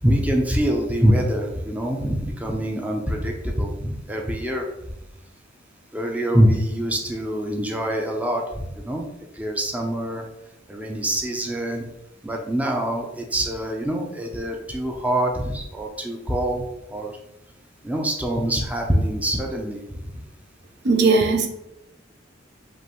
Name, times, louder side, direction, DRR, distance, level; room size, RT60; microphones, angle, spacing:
voice 1, 0.0-4.7 5.9-9.1 9.3-10.3 10.7-11.9 12.2-16.6 16.9-17.1 17.8-20.2, equal, 10° right, 1 dB, 0.5 m, -24 dB
voice 2, 20.8-21.5, right 3 dB, 65° right, 4 dB, 0.6 m, -18 dB
5.2 x 2.6 x 3.0 m, 0.88 s
head